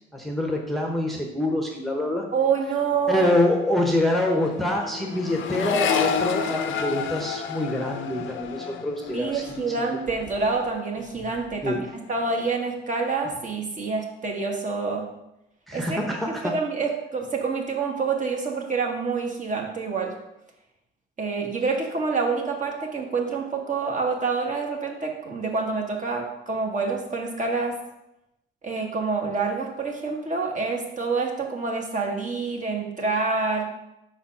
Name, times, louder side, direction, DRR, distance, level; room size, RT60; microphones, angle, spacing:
voice 1, 0.1-2.3 3.1-9.6 11.6-11.8 15.7-16.5, left 1 dB, ahead, 1 dB, 0.9 m, -25 dB
voice 2, 2.3-3.3 9.1-11.8 12.1-15.0 15.7-16.0 16.3-20.1 21.2-27.7 28.6-33.7, right 4 dB, 40° right, 1 dB, 1.4 m, -27 dB
Accelerating revving vroom, 2.7-2.9 3.2-10.7 11.0-11.7, left 7 dB, 80° left, 0.7 m, -31 dB
5.2 x 4.1 x 5.8 m, 0.87 s
cardioid pair, 90°, 20 cm